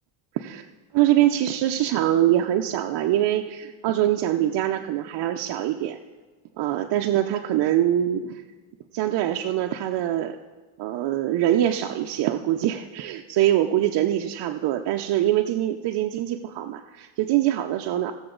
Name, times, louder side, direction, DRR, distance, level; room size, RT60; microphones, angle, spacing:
voice 1, 0.3-0.6 0.9-6.0 6.6-8.4 8.9-10.4 10.8-18.1, right 12 dB, 55° right, 3 dB, 0.7 m, -23 dB
17.5 x 7.0 x 3.8 m, 1.4 s
cardioid pair, 110°, 49 cm